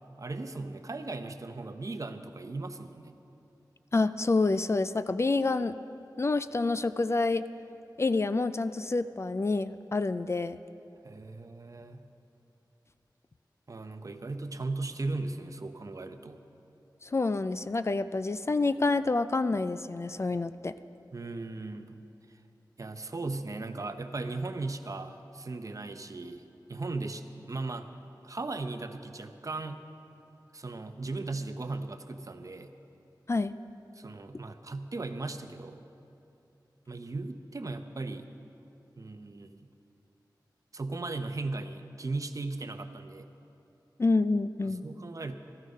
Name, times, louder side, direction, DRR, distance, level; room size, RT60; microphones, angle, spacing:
voice 1, 0.2-3.1 11.0-12.1 13.7-16.4 21.1-22.0 22.8-26.4 26.7-27.9 28.2-29.8 30.5-32.7 33.9-35.8 36.9-38.3 39.0-39.7 40.7-43.3 44.6-45.4, right 3 dB, 45° right, 8 dB, 0.7 m, -37 dB
voice 2, 3.9-5.7 6.2-7.4 8.0-10.6 17.0-20.7 33.3-33.5 44.0-44.8, left 3 dB, 35° left, 12 dB, 0.3 m, -28 dB
14.0 x 13.0 x 5.4 m, 2.8 s
wide cardioid pair, 90°, 8 cm